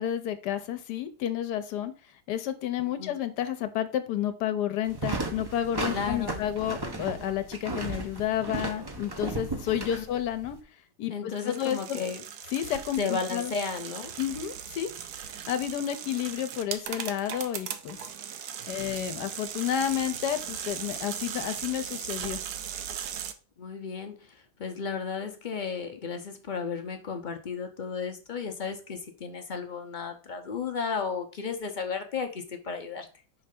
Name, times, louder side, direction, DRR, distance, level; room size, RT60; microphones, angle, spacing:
voice 1, 0.0-1.9 2.3-10.6 11.0-12.0 12.5-13.5 14.2-14.9 15.5-18.0 18.7-22.4, left 10 dB, 85° left, 9 dB, 1.2 m, -31 dB
voice 2, 2.8-3.1 5.9-6.5 10.0-10.1 11.1-12.2 13.0-14.1 18.8-18.9 23.6-33.1, left 5 dB, 55° left, 5 dB, 0.5 m, -34 dB
sound 1, 4.9-10.6, right 2 dB, 30° right, 0.4 m, -35 dB
sound 2, 11.3-23.3, right 9 dB, 75° right, 1.1 m, -38 dB
5.7 x 3.2 x 5.1 m, 0.35 s
omnidirectional pair, 1.7 m